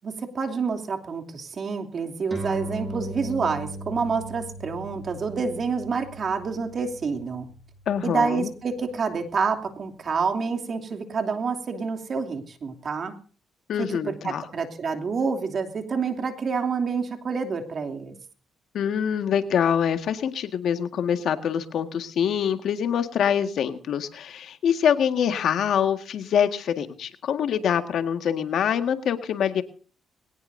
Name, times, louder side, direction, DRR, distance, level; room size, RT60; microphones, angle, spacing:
voice 1, 0.0-7.5 8.0-13.2 13.8-18.1, right 5 dB, 50° right, 5 dB, 2.9 m, -28 dB
sound 1, 2.3-9.1, right 1 dB, 25° right, 6.3 m, -38 dB
voice 2, 7.9-8.5 13.7-14.4 18.7-29.6, left 8 dB, 70° left, 8 dB, 1.7 m, -25 dB
21.5 x 18.5 x 2.7 m, 0.40 s
cardioid pair, 90°, 0 cm